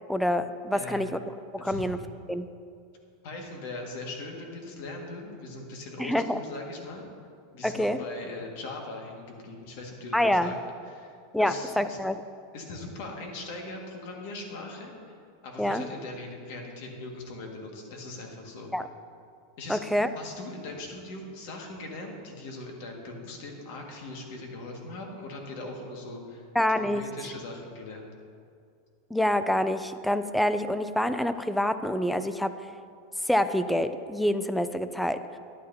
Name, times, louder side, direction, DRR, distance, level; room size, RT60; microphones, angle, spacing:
voice 1, 0.1-1.2 1.5-2.0 2.3-2.5 6.0-6.4 7.6-8.0 10.1-10.5 11.3-12.2 15.6-15.8 18.7-18.9 19.7-20.1 26.5-27.0 29.1-32.5 33.3-35.4, left 1 dB, ahead, 11 dB, 0.3 m, -26 dB
voice 2, 3.2-7.0 7.5-10.6 10.8-12.0 12.5-15.2 15.4-18.7 19.6-19.8 20.1-26.5 26.8-28.1, left 2 dB, 60° left, 1 dB, 1.7 m, -40 dB
11.5 x 10.0 x 2.7 m, 2.3 s
supercardioid pair, 140°, 0 cm